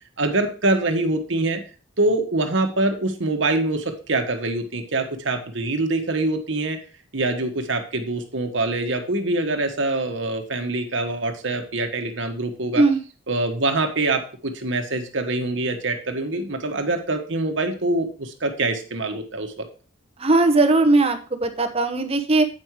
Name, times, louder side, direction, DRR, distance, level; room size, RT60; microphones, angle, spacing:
voice 1, 0.2-1.6 2.0-6.8 7.1-12.8 13.3-19.7, right 2 dB, 65° right, 5 dB, 1.3 m, -24 dB
voice 2, 20.2-22.4, right 2 dB, 30° right, 6 dB, 0.9 m, -18 dB
8.6 x 5.4 x 4.7 m, 0.37 s
head